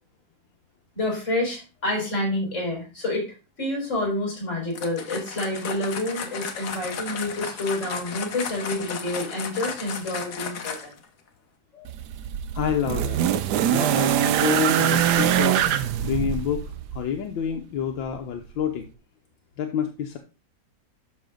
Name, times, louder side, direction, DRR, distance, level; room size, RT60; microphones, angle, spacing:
voice 1, 1.0-3.3 3.6-10.9 11.7-11.9, left 1 dB, 40° left, -1 dB, 5.5 m, -28 dB
sound 1, 4.7-11.1, left 6 dB, 60° left, 1.6 m, -34 dB
sound 2, 11.9-17.1 18.1-18.2, right 10 dB, 70° right, 1.2 m, -23 dB
voice 2, 12.5-13.2 13.7-15.6 16.0-18.9 19.6-20.2, left 8 dB, 80° left, 4 dB, 1.7 m, -28 dB
12.0 x 5.9 x 3.8 m, 0.31 s
omnidirectional pair, 2.1 m